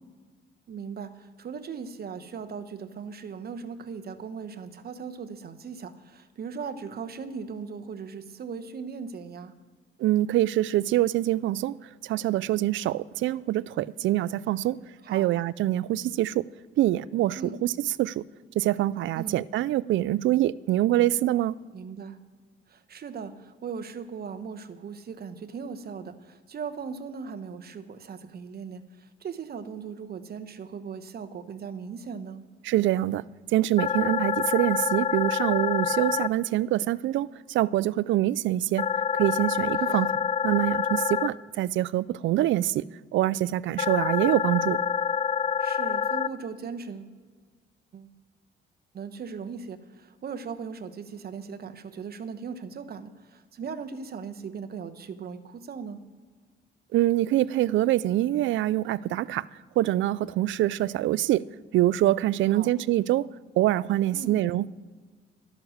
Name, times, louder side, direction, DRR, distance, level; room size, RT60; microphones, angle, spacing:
voice 1, 0.7-9.5 15.0-15.4 17.4-17.6 19.1-19.4 21.7-22.2 22.7-32.4 39.8-40.2 45.6-47.1 47.9-48.1 48.9-56.0 62.5-62.7 64.1-64.4, right 6 dB, 50° right, 1.1 m, -38 dB
voice 2, 10.0-11.8 12.0-14.8 15.1-16.4 16.8-18.2 18.6-21.5 32.6-33.2 33.5-38.9 39.1-40.1 40.4-42.9 43.1-44.8 56.9-59.5 59.8-61.4 61.7-63.3 63.6-64.7, right 14 dB, 75° right, 0.4 m, -25 dB
sound 1, 33.8-36.3 38.8-41.3 43.8-46.3, left 7 dB, 30° left, 0.5 m, -27 dB
12.5 x 9.6 x 6.5 m
cardioid pair, 90°, 20 cm